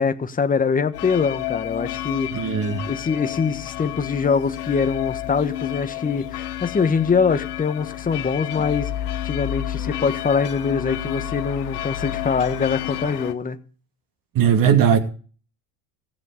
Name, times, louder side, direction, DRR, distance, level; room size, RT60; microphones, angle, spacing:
voice 1, 0.0-2.5 2.9-8.9 9.2-13.6, left 5 dB, 20° left, 1.3 m, -23 dB
sound 1, 0.9-13.3, left 12 dB, 90° left, 1.3 m, -30 dB
voice 2, 2.3-2.8 14.3-15.0, right 8 dB, 45° right, 2.7 m, -18 dB
15.5 x 7.6 x 6.5 m
supercardioid pair, 95°, 45 cm